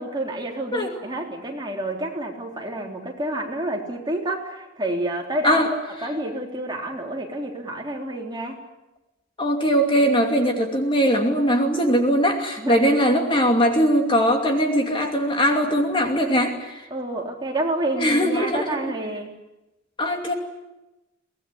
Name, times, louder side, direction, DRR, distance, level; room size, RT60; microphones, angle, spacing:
voice 1, 0.0-5.6 6.0-8.6 12.6-13.0 16.9-19.3, right 1 dB, 20° right, 0 dB, 3.7 m, -29 dB
voice 2, 9.4-16.8 18.0-18.8 20.0-20.3, equal, 25° left, 3 dB, 2.6 m, -20 dB
24.0 x 19.0 x 9.9 m, 1.0 s
head